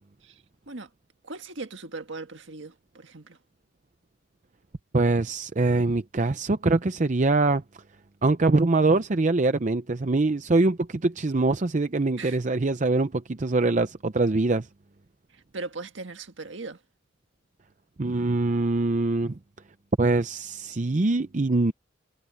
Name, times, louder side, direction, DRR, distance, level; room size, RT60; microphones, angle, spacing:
voice 1, 0.2-0.9 1.2-3.4 12.2-12.4 15.3-16.8, right 3 dB, 65° right, 1.8 m, -39 dB
voice 2, 4.9-7.6 8.2-14.7 18.0-19.4 20.0-21.7, right 2 dB, 40° right, 0.6 m, -23 dB
head